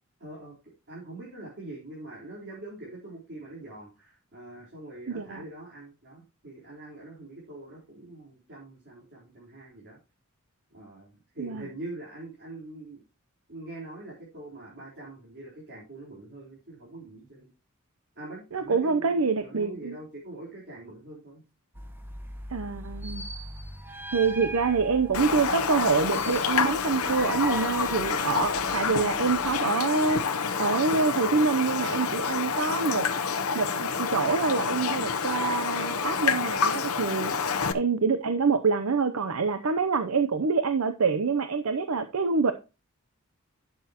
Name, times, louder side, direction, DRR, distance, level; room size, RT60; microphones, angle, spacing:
voice 1, 0.2-10.0 10.7-13.0 13.5-17.5 18.2-21.4 37.2-37.5, right 2 dB, 55° right, 4.1 m, -43 dB
voice 2, 5.1-5.4 11.4-11.6 18.5-20.0 22.5-23.2 24.1-33.1 33.5-37.3 37.7-42.5, right 4 dB, 80° right, 0.7 m, -26 dB
sound 1, 21.7-29.5, right 1 dB, 10° right, 1.2 m, -40 dB
Raindrop, 25.1-37.7, left 6 dB, 85° left, 0.8 m, -28 dB
11.5 x 8.0 x 2.9 m
head